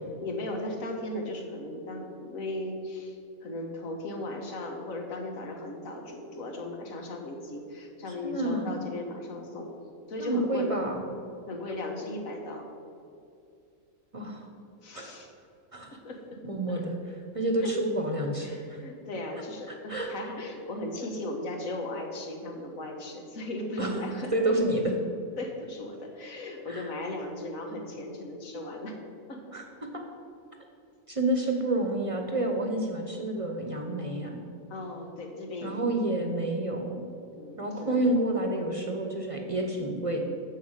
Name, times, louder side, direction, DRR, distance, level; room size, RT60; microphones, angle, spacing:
voice 1, 0.2-9.7 10.1-10.7 11.5-12.7 14.8-15.3 16.0-16.4 16.7-16.9 17.6-17.7 18.4-24.6 25.4-29.0 29.3-29.6 34.7-35.9 37.4-38.0, left 1 dB, 85° left, 2 dB, 1.7 m, -37 dB
voice 2, 8.2-8.8 10.2-11.0 14.1-14.5 14.9-15.2 15.7-15.9 16.4-16.9 17.3-18.8 19.9-20.1 23.8-23.9 24.3-24.8 26.7-26.9 29.5-29.6 29.9-30.0 31.1-34.4 35.6-37.0 37.6-40.2, right 1 dB, 30° right, 2 dB, 0.8 m, -29 dB
7.5 x 6.9 x 6.6 m, 2.5 s
omnidirectional pair, 1.4 m